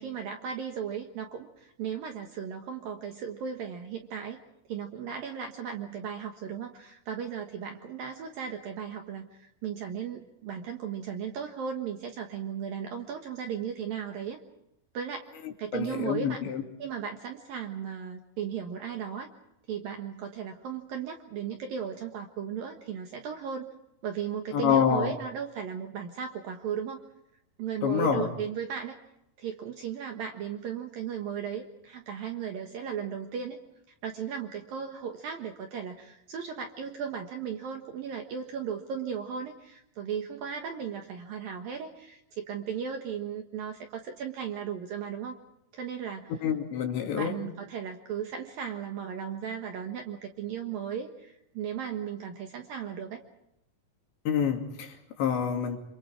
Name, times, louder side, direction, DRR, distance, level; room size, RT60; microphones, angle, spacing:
voice 1, 0.0-4.4 4.7-14.4 14.9-15.3 15.6-16.4 16.8-19.3 19.7-23.7 24.0-27.0 27.6-29.0 29.4-33.6 34.0-45.4 45.7-46.3 47.1-53.2, right 7 dB, 65° right, 4 dB, 2.5 m, -36 dB
voice 2, 15.4-16.6 24.5-25.1 27.8-28.3 46.4-47.4 54.3-55.8, left 7 dB, 65° left, 2 dB, 4.8 m, -27 dB
27.5 x 27.0 x 4.7 m, 0.81 s
omnidirectional pair, 5.6 m